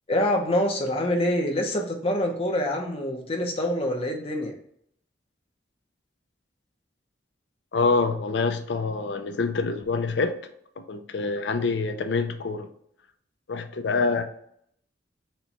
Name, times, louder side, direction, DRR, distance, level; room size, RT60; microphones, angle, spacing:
voice 1, 0.1-4.5, left 1 dB, 30° left, 2 dB, 0.7 m, -25 dB
voice 2, 7.7-10.3 10.9-12.7 13.5-14.2, left 4 dB, 70° left, 8 dB, 0.5 m, -26 dB
4.4 x 2.3 x 4.1 m, 0.70 s
head